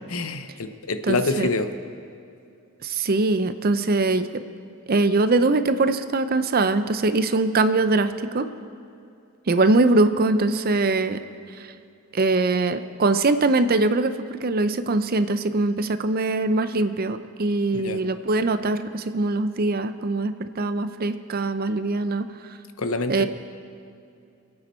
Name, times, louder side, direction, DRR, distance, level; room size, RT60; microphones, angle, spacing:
voice 1, 0.1-1.7 17.7-18.0 22.8-23.3, left 3 dB, 80° left, 9 dB, 0.8 m, -26 dB
voice 2, 1.1-1.5 2.8-4.4 4.9-8.5 9.5-11.2 11.6-11.7 12.1-22.3 23.1-23.3, right 2 dB, 45° right, 11 dB, 0.6 m, -22 dB
26.0 x 8.8 x 4.4 m, 2.6 s
head